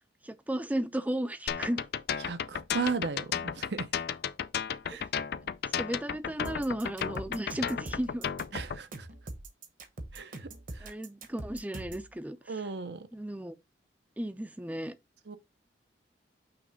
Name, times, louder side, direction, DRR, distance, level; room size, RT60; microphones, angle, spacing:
voice 1, 0.2-1.8 5.8-8.3 10.8-12.4 13.1-13.5 14.2-14.9, right 1 dB, 10° right, 0.5 m, -34 dB
sound 1, 1.5-8.8, left 7 dB, 60° left, 0.4 m, -33 dB
voice 2, 2.2-3.9 4.9-5.1 5.4-5.5 8.5-9.1 10.1-10.9 12.5-13.1 15.3-15.4, right 4 dB, 70° right, 0.7 m, -36 dB
sound 2, 6.4-12.1, right 2 dB, 50° right, 1.0 m, -43 dB
5.9 x 3.2 x 5.0 m
head